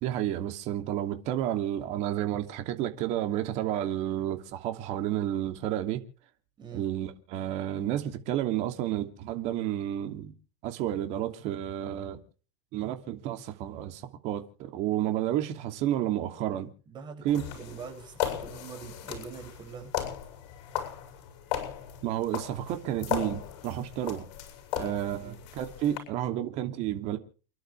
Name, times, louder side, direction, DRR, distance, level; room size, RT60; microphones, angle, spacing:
voice 1, 0.0-6.0 6.7-10.3 10.6-12.2 12.7-16.7 17.2-17.4 22.0-24.3 24.8-27.2, right 12 dB, 50° right, 2.8 m, -31 dB
voice 2, 16.9-19.9 25.1-25.4, right 6 dB, 30° right, 6.8 m, -44 dB
sound 1, 17.3-26.0, left 11 dB, 60° left, 8.0 m, -37 dB
29.5 x 11.5 x 3.4 m
supercardioid pair, 135°, 15 cm